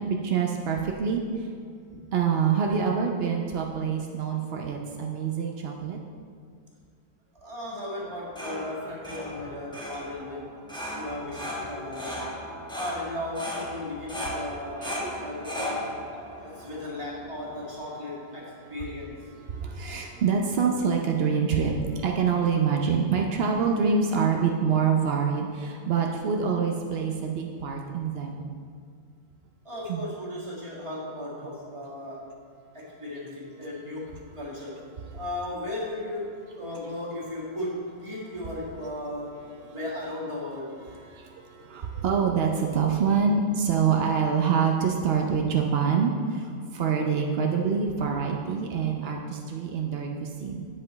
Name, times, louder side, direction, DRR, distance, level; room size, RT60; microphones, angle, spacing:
voice 1, 0.2-1.5 2.1-6.0 14.8-15.1 16.3-16.7 19.5-28.5 29.9-30.0 41.0-50.7, right 6 dB, 80° right, 1 dB, 0.5 m, -26 dB
voice 2, 7.3-10.5 11.0-12.2 12.7-16.0 16.4-19.3 29.6-32.3 32.7-34.8 35.2-40.8, left 1 dB, 20° right, -6 dB, 1.8 m, -36 dB
sound 1, 8.0-17.7, left 1 dB, 5° left, 0.7 m, -37 dB
7.8 x 7.5 x 4.0 m, 2.1 s
omnidirectional pair, 1.8 m